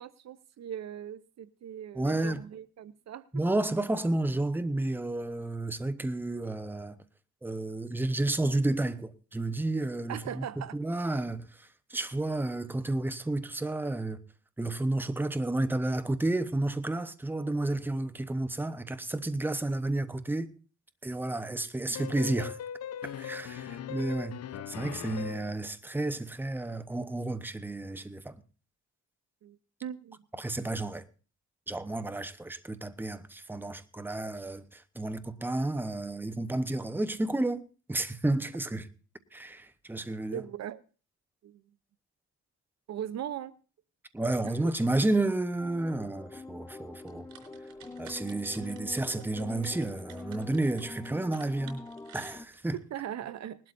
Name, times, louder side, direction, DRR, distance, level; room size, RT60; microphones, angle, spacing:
voice 1, 0.0-3.2 10.1-10.8 29.4-30.2 40.3-40.8 41.4-41.6 42.9-43.5 44.4-44.5 48.6-48.7 52.9-53.7, right 10 dB, 60° right, 0.7 m, -39 dB
voice 2, 1.9-2.4 3.3-7.0 7.4-10.4 10.7-14.2 14.6-20.5 21.0-22.6 23.0-24.4 24.7-28.4 30.4-31.0 31.7-38.9 39.3-40.4 44.1-47.3 48.0-51.8 52.1-52.8, right 2 dB, 5° right, 0.9 m, -31 dB
sound 1, 21.9-25.6, left 9 dB, 55° left, 0.8 m, -40 dB
sound 2, 45.6-52.5, left 3 dB, 10° left, 0.5 m, -45 dB
sound 3, 47.0-52.8, right 8 dB, 90° right, 3.8 m, -54 dB
20.0 x 12.0 x 2.6 m
cardioid pair, 90°, 30 cm